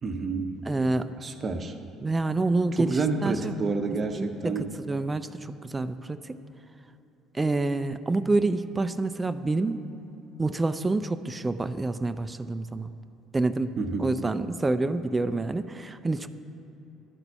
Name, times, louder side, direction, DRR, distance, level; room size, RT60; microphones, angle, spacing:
voice 1, 0.0-0.5 1.2-1.8 2.8-4.6 13.8-14.1, right 4 dB, 40° right, 7 dB, 0.7 m, -29 dB
voice 2, 0.7-1.1 2.0-3.5 4.2-6.4 7.3-9.9 10.4-12.9 13.3-16.3, right 2 dB, 20° right, 11 dB, 0.3 m, -27 dB
11.5 x 4.0 x 5.6 m, 3.0 s
figure-of-eight pair, 55°, 0 cm